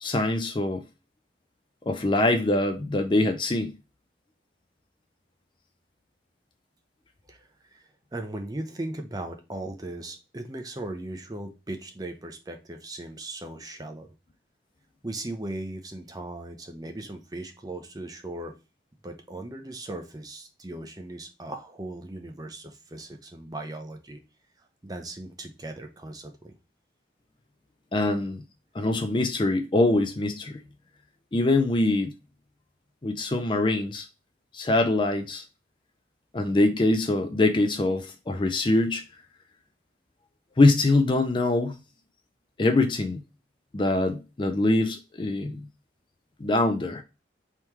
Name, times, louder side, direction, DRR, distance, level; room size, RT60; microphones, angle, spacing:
voice 1, 0.0-0.8 1.9-3.7 27.9-28.4 28.7-30.6 31.3-32.1 33.0-34.1 34.5-35.4 36.3-39.0 40.6-41.8 42.6-43.2 43.7-45.6 46.4-47.0, left 2 dB, 25° left, 0.4 m, -23 dB
voice 2, 7.3-7.8 8.1-14.1 15.0-18.5 19.0-24.2 24.8-26.5, right 2 dB, 20° right, 0.6 m, -38 dB
3.5 x 3.0 x 4.3 m
head